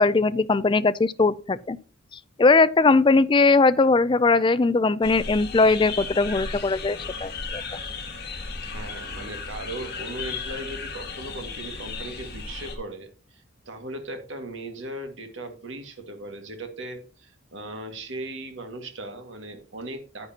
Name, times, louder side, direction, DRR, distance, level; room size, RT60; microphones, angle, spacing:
voice 1, 0.0-1.8 2.4-7.6, left 3 dB, 25° left, 0.3 m, -20 dB
sound 1, 5.0-12.8, left 4 dB, 50° left, 1.9 m, -35 dB
voice 2, 8.3-20.3, right 1 dB, 65° right, 1.8 m, -38 dB
9.8 x 9.8 x 2.8 m
head